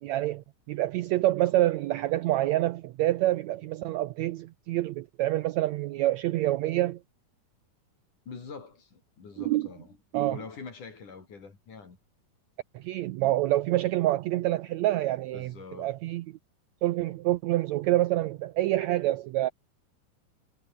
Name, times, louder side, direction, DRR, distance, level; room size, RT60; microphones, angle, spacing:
voice 1, 0.0-7.0 9.4-9.7 10.1-10.4 12.7-16.2 16.8-19.5, right 15 dB, 80° right, 1.6 m, -27 dB
voice 2, 8.3-10.0 10.3-12.0 15.3-15.9, left 5 dB, 65° left, 6.2 m, -44 dB
omnidirectional pair, 3.8 m